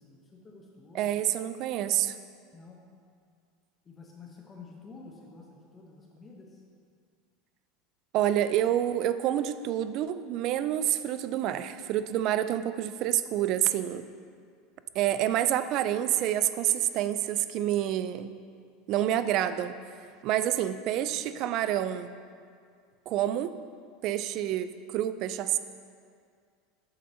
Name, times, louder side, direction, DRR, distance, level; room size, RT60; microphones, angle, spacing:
voice 1, 0.0-1.2 2.5-2.8 3.8-6.6, left 4 dB, 20° left, -1 dB, 0.7 m, -50 dB
voice 2, 0.9-2.2 8.1-14.1 15.0-18.3 18.9-19.7 20.2-22.1 23.1-23.5 24.0-25.6, right 12 dB, 50° right, 12 dB, 0.3 m, -28 dB
8.5 x 6.7 x 2.7 m, 2.2 s
supercardioid pair, 135°, 0 cm